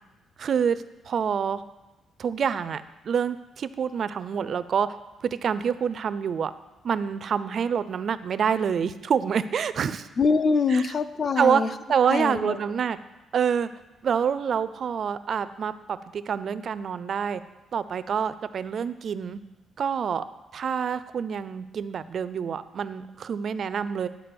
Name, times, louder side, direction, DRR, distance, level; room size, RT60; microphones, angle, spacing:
voice 1, 0.4-1.6 2.2-4.9 5.2-6.5 6.8-10.1 10.7-10.8 11.4-11.6 11.9-13.0 13.3-13.7 14.0-17.4 17.7-19.4 19.8-20.3 20.5-24.1, right 7 dB, 45° right, 14 dB, 0.3 m, -27 dB
voice 2, 10.2-11.7 12.1-12.6, left 4 dB, 30° left, 13 dB, 0.4 m, -24 dB
10.5 x 4.7 x 6.8 m, 1.1 s
cardioid pair, 165°, 0 cm